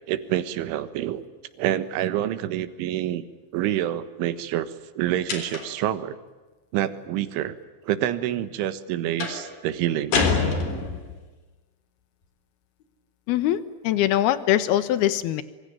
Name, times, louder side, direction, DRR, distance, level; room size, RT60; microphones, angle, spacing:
voice 1, 0.1-1.2 1.6-3.3 3.5-6.2 6.7-7.5 7.8-10.2, right 12 dB, 75° right, 13 dB, 3.8 m, -27 dB
sound 1, 5.3-5.9 9.2-9.5 10.1-11.2, left 4 dB, 50° left, 5.2 m, -25 dB
voice 2, 13.3-15.4, left 12 dB, 70° left, 14 dB, 2.6 m, -22 dB
26.0 x 25.0 x 8.8 m, 1.2 s
omnidirectional pair, 5.6 m